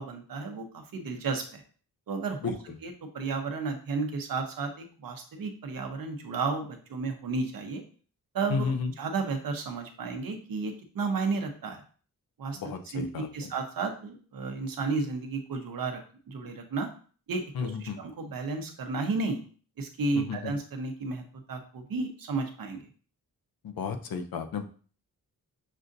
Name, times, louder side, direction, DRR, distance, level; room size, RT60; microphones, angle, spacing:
voice 1, 0.0-1.6 2.1-2.5 2.8-7.8 8.3-8.7 9.0-11.8 12.4-16.0 16.3-16.9 17.3-19.4 19.8-22.8, right 4 dB, 75° right, 4 dB, 0.9 m, -33 dB
voice 2, 8.5-8.9 12.6-13.3 17.6-18.0 20.2-20.5 23.6-24.6, left 5 dB, 85° left, 6 dB, 0.6 m, -32 dB
6.2 x 2.6 x 2.6 m, 0.41 s
wide cardioid pair, 130°, 35 cm